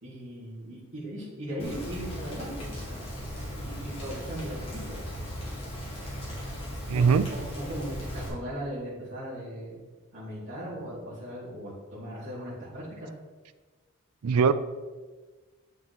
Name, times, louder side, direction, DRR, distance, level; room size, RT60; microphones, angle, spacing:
voice 1, 0.0-3.1 3.5-5.0 6.9-9.8 10.1-13.1, equal, 60° right, -10 dB, 2.3 m, -38 dB
Rain, 1.6-8.3, equal, 25° left, 2.1 m, -37 dB
voice 2, 6.9-7.3 14.2-14.5, right 5 dB, 90° right, 13 dB, 0.4 m, -21 dB
8.6 x 6.2 x 3.0 m, 1.3 s
head